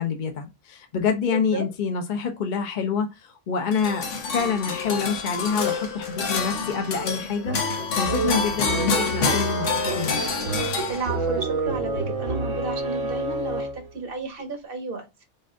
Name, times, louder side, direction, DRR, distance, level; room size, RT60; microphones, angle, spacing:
voice 1, 0.0-10.2, left 6 dB, 45° left, 0.7 m, -27 dB
voice 2, 1.3-1.6 10.9-15.1, right 4 dB, 50° right, 1.0 m, -32 dB
sound 1, 3.7-11.4, left 5 dB, 75° left, 1.2 m, -27 dB
sound 2, 7.5-13.9, right 3 dB, 85° right, 1.4 m, -29 dB
4.2 x 2.5 x 3.6 m
omnidirectional pair, 1.3 m